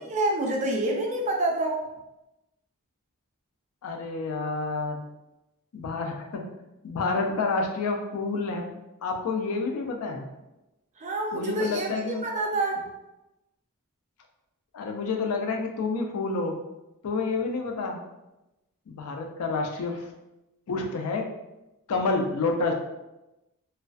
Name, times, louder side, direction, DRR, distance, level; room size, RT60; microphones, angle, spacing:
voice 1, 0.1-1.8 11.0-12.8, right 2 dB, 30° right, 0 dB, 0.4 m, -27 dB
voice 2, 3.8-5.0 5.7-6.5 6.8-8.7 9.0-10.3 11.3-12.3 14.7-16.6 17.0-18.0 18.9-20.1 20.7-21.2 21.9-22.7, left 3 dB, 75° left, 3 dB, 0.4 m, -29 dB
2.4 x 2.2 x 2.3 m, 0.96 s
head